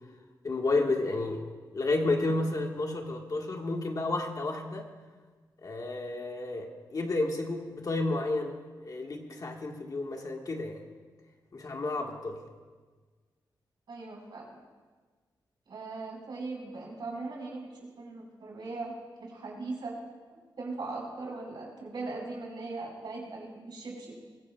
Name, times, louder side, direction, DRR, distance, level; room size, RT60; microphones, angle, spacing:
voice 1, 0.4-4.9 5.6-10.8 11.5-12.4, left 2 dB, 50° left, 2 dB, 1.7 m, -31 dB
voice 2, 13.9-14.6 15.7-17.7 17.9-20.0 20.6-24.1, right 3 dB, 70° right, -2 dB, 4.9 m, -39 dB
22.0 x 16.0 x 2.4 m, 1.4 s
cardioid pair, 90°, 8 cm